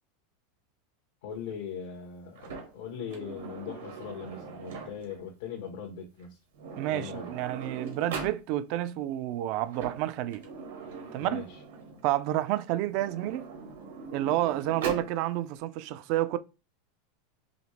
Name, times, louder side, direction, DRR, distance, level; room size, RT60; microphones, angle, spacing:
voice 1, 1.2-6.4 6.8-7.3 11.2-11.6, left 7 dB, 75° left, 1.2 m, -40 dB
Sliding door, 2.3-5.2 6.2-6.3 6.5-8.4 9.5-12.0 12.8-15.1, right 5 dB, 90° right, 1.6 m, -41 dB
voice 2, 6.8-10.4 11.1-11.4 12.0-13.5 14.1-16.4, right 14 dB, 55° right, 0.4 m, -29 dB
5.0 x 2.8 x 3.3 m
supercardioid pair, 135°, 0 cm